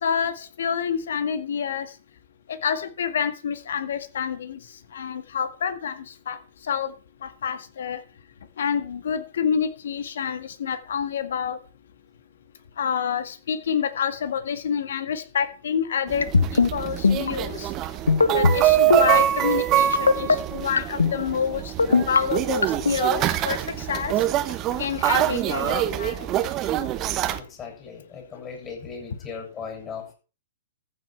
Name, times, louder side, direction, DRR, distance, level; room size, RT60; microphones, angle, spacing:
voice 1, 0.0-1.9 2.6-4.6 4.9-6.4 6.7-6.9 7.2-8.0 8.6-11.6 12.8-17.7 18.3-24.1 24.8-26.3, left 7 dB, 65° left, 10 dB, 1.8 m, -28 dB
sound 1, 16.1-27.4, right 12 dB, 30° right, 1.1 m, -24 dB
sound 2, 16.2-16.7 17.0-17.3 18.1-18.6 18.9-19.2 19.9-20.3 20.8-21.1 21.8-22.2 22.6-23.0, left 4 dB, 80° left, 0.8 m, -17 dB
voice 2, 27.3-30.1, left 5 dB, 25° left, 1 dB, 7.7 m, -38 dB
14.5 x 8.3 x 4.5 m, 0.35 s
figure-of-eight pair, 110°, 0 cm